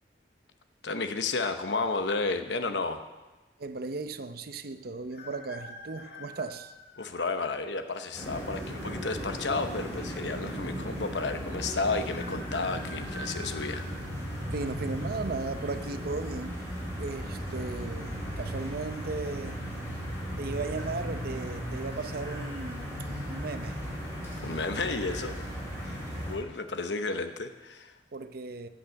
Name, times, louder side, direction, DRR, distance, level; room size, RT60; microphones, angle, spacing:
voice 1, 0.8-3.0 7.0-13.8 24.4-25.3 25.8-27.9, left 3 dB, 85° left, 8 dB, 1.0 m, -32 dB
voice 2, 3.6-6.7 14.4-16.5 17.0-19.6 20.4-22.8 23.2-23.8 25.1-25.4 28.1-28.7, right 3 dB, 60° right, 11 dB, 0.7 m, -36 dB
sound 1, 5.1-7.1 7.8-7.9 9.0-9.6 9.9-10.0 10.2-10.3 12.1-14.7 15.3-15.7 16.8-17.2 17.4-17.5 18.0-18.4 18.9-19.1, left 1 dB, 65° left, 1.6 m, -46 dB
sound 2, 8.1-26.4, equal, 15° left, 4.2 m, -36 dB
16.0 x 5.6 x 7.5 m, 1.2 s
head